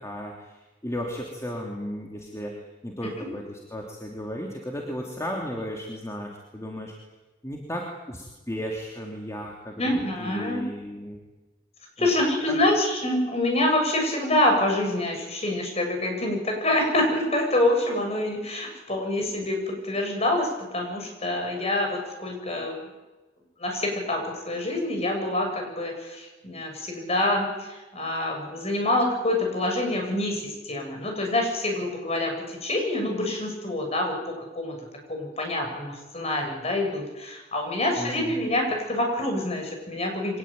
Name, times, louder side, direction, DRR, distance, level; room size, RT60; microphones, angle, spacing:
voice 1, 0.0-2.5 2.8-6.9 7.4-11.2 12.0-12.1 12.5-12.6 38.0-38.4, equal, 15° left, 0 dB, 3.0 m, -35 dB
voice 2, 9.8-10.7 12.0-22.8 23.6-34.1 34.5-34.8 35.1-40.4, left 1 dB, 35° left, 2 dB, 7.6 m, -26 dB
24.5 x 19.0 x 9.2 m, 1.2 s
head